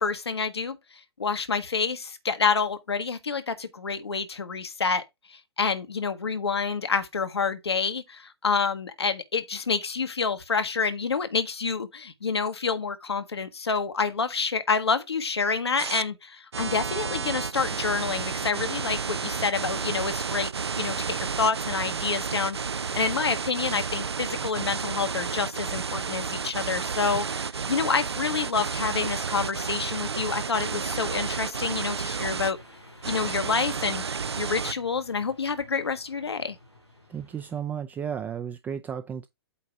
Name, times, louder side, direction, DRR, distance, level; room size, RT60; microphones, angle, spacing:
voice 1, 0.0-0.8 1.2-5.0 5.3-20.5 20.8-32.6 33.0-34.0 34.4-36.6, left 5 dB, 75° left, 1.0 m, -28 dB
sound 1, 15.8-16.0 16.5-32.5 33.0-34.7, right 5 dB, 80° right, 0.4 m, -31 dB
sound 2, 32.1-37.6, left 1 dB, 90° left, 3.5 m, -52 dB
voice 2, 37.1-39.3, right 8 dB, 10° right, 0.4 m, -33 dB
8.3 x 2.9 x 5.6 m
figure-of-eight pair, 115°, 14 cm